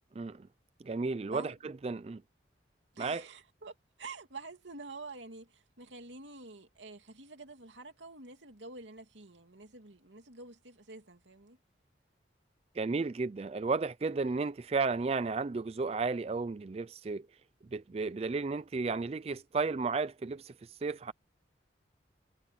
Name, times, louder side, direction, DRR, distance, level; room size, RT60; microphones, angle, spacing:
voice 1, 0.2-0.5 0.8-2.2 3.0-3.2 12.8-17.3 17.7-21.1, right 4 dB, 35° right, 0.4 m, -33 dB
voice 2, 2.9-11.6, right 3 dB, 90° right, 2.9 m, -48 dB
head